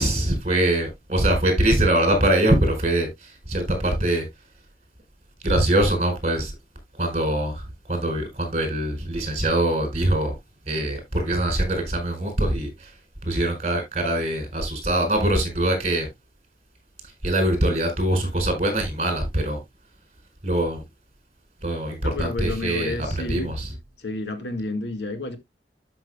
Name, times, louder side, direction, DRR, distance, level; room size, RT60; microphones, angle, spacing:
voice 1, 0.0-4.3 5.4-6.6 6.9-10.4 10.7-16.1 17.0-19.6 20.4-20.8 21.6-23.7, right 1 dB, 35° right, 4.5 m, -23 dB
voice 2, 22.0-23.5 24.0-25.4, left 2 dB, 80° left, 1.8 m, -30 dB
12.5 x 6.0 x 2.2 m
head